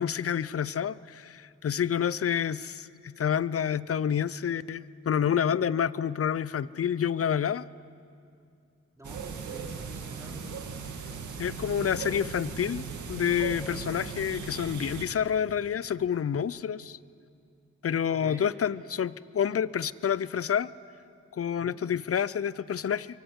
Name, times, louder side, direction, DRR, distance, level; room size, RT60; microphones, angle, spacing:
voice 1, 0.0-7.6 11.4-17.0 17.8-20.7 21.4-23.1, left 8 dB, 50° left, 18 dB, 0.7 m, -28 dB
voice 2, 8.9-10.4 18.1-18.5 21.6-21.8, right 1 dB, 10° right, -1 dB, 4.8 m, -48 dB
sound 1, 9.0-15.1, right 5 dB, 80° right, 2.2 m, -38 dB
26.0 x 23.5 x 8.2 m, 2.4 s
cardioid pair, 75°, 29 cm